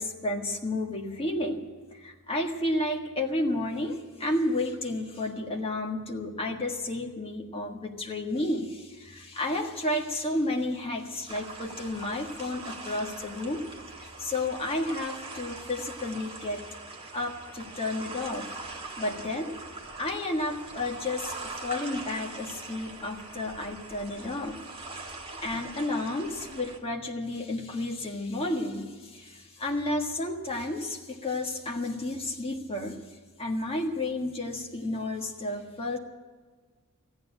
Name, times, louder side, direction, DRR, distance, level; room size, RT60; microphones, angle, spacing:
voice 1, 0.0-13.7 14.0-16.6 17.1-18.5 19.0-19.5 20.0-24.6 25.4-33.0 33.4-36.0, left 1 dB, 25° left, 1 dB, 1.6 m, -31 dB
sound 1, 11.3-26.8, right 3 dB, 25° right, 1.6 m, -42 dB
14.5 x 9.5 x 9.8 m, 1.4 s
head